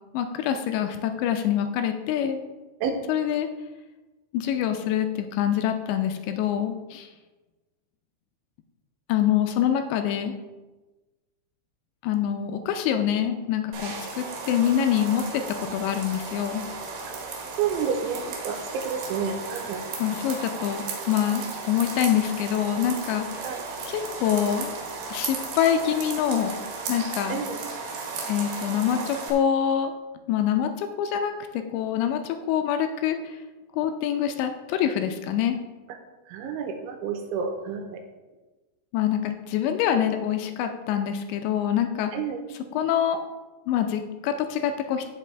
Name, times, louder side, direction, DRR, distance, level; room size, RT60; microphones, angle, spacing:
voice 1, 0.1-2.4 3.1-3.5 4.3-7.1 9.1-10.3 12.0-16.6 20.0-23.3 23.9-24.7 25.1-26.6 26.9-27.4 28.3-29.9 30.3-33.4 33.7-35.6 38.9-42.1 42.7-43.2 43.7-45.1, left 9 dB, 80° left, 6 dB, 2.8 m, -25 dB
sound 1, 13.7-29.3, right 4 dB, 65° right, 3.2 m, -35 dB
voice 2, 17.6-19.8 23.4-23.7 27.3-27.6 36.3-38.0 42.1-42.4, right 6 dB, 90° right, 5 dB, 3.3 m, -30 dB
15.5 x 5.6 x 3.4 m, 1.2 s
omnidirectional pair, 5.4 m